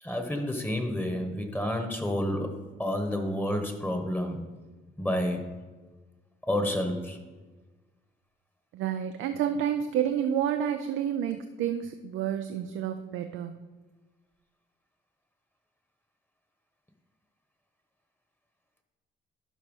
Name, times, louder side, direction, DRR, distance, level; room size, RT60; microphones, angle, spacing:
voice 1, 0.0-4.4 5.0-5.4 6.5-7.2, left 1 dB, 10° left, 4 dB, 1.2 m, -30 dB
voice 2, 8.7-13.6, right 9 dB, 85° right, 8 dB, 0.5 m, -29 dB
11.5 x 4.1 x 5.4 m, 1.3 s
cardioid pair, 90°, 20 cm